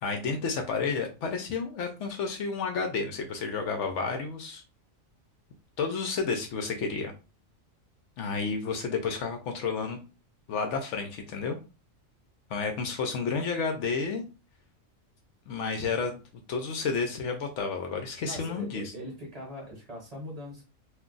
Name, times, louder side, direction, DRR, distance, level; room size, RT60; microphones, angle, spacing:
voice 1, 0.0-4.6 5.8-7.1 8.2-10.0 10.5-11.6 12.5-14.2 15.5-16.2 16.5-18.9, left 5 dB, 70° left, 4 dB, 0.8 m, -31 dB
voice 2, 18.2-20.6, equal, 30° right, -2 dB, 1.0 m, -41 dB
2.5 x 2.2 x 3.8 m, 0.31 s
omnidirectional pair, 1.4 m